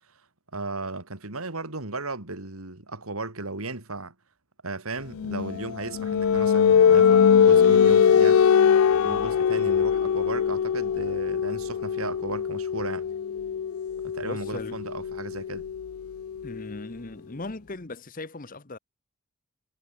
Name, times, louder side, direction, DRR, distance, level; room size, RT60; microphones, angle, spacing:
voice 1, 0.5-4.1 4.6-8.4 9.0-13.1 14.0-15.7, right 3 dB, 80° right, 2.9 m, -35 dB
sound 1, 5.2-16.7, left 7 dB, 80° left, 0.4 m, -22 dB
voice 2, 14.2-14.8 16.4-18.8, left 2 dB, 40° left, 1.1 m, -38 dB
head